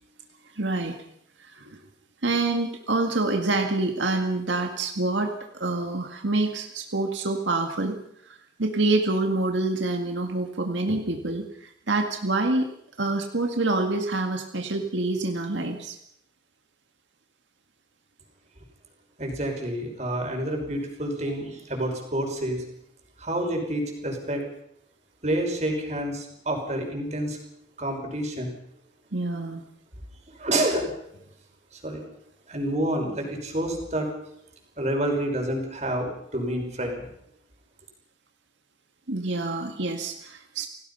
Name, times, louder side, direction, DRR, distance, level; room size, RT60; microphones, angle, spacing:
voice 1, 0.6-1.0 1.4-1.8 2.2-8.0 8.3-12.7 13.0-16.0 29.1-29.6 39.1-40.7, right 2 dB, 85° right, 4 dB, 2.0 m, -27 dB
voice 2, 19.2-22.6 23.2-24.4 25.2-27.4 27.8-28.5 30.4-30.9 31.7-32.0 32.5-34.1 34.8-37.1, right 1 dB, 40° right, 2 dB, 5.8 m, -28 dB
29.0 x 18.0 x 5.6 m, 0.73 s
head